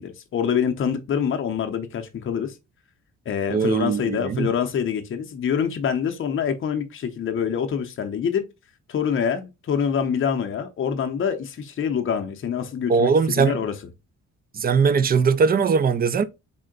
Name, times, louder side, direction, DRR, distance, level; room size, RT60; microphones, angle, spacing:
voice 1, 0.0-2.5 3.3-8.4 8.9-13.7, left 7 dB, 45° left, 0.7 m, -25 dB
voice 2, 3.5-4.5 12.9-13.6 14.5-16.2, right 5 dB, 30° right, 0.4 m, -20 dB
3.6 x 2.1 x 3.7 m
cardioid pair, 90°, 30 cm